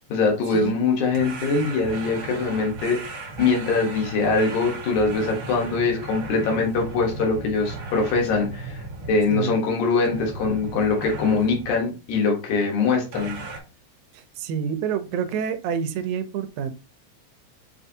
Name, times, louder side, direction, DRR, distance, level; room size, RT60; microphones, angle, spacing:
voice 1, 0.1-13.4, left 4 dB, 80° left, 0 dB, 2.7 m, -23 dB
sound 1, 1.1-9.6 10.0-11.8 13.1-13.6, right 3 dB, 65° right, 1.3 m, -36 dB
voice 2, 14.1-16.7, right 7 dB, 90° right, 9 dB, 2.0 m, -28 dB
7.2 x 2.6 x 2.7 m, 0.31 s
omnidirectional pair, 3.3 m